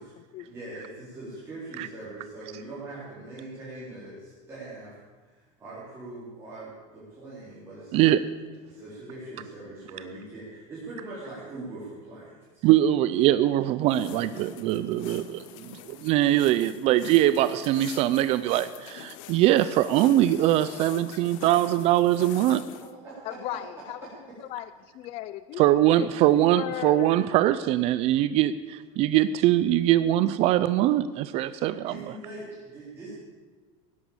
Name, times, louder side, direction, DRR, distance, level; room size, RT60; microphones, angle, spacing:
voice 1, 0.0-5.0 5.2-8.1 8.7-12.7 23.0-23.1 31.8-33.1, right 2 dB, 15° right, -10 dB, 4.1 m, -42 dB
voice 2, 12.6-22.6 25.6-32.0, right 13 dB, 40° right, 14 dB, 0.4 m, -22 dB
sound 1, 13.9-22.9, left 11 dB, 80° left, 1.1 m, -44 dB
voice 3, 23.2-24.0 24.4-27.1, left 13 dB, 35° left, 14 dB, 0.4 m, -37 dB
17.0 x 10.0 x 7.2 m, 1.4 s
cardioid pair, 175°, 17 cm